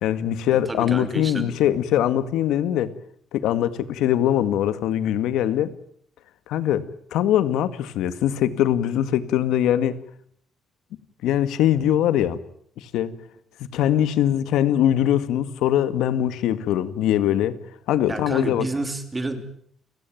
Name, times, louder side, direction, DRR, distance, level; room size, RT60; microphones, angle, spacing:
voice 1, 0.0-2.9 3.3-5.7 6.5-10.0 11.2-12.4 12.8-13.2 13.7-17.6 17.9-18.7, left 11 dB, 85° left, 13 dB, 1.9 m, -22 dB
voice 2, 0.5-1.5 18.1-19.4, right 2 dB, 15° right, 9 dB, 3.0 m, -30 dB
30.0 x 16.5 x 9.3 m, 0.65 s
cardioid pair, 170°, 0 cm